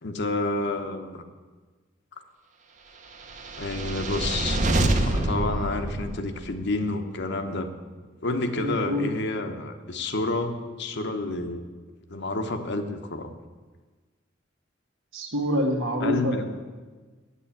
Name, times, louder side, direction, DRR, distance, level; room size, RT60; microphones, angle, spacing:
voice 1, 0.0-1.2 3.6-4.6 5.1-7.7 8.2-11.7 12.1-13.3 16.0-16.5, left 2 dB, 60° left, 7 dB, 1.0 m, -29 dB
sound 1, 3.2-6.6, right 1 dB, 40° right, 0.9 m, -26 dB
voice 2, 8.6-9.1 15.1-16.5, equal, 90° right, 3 dB, 1.7 m, -26 dB
8.5 x 7.7 x 8.6 m, 1.4 s
head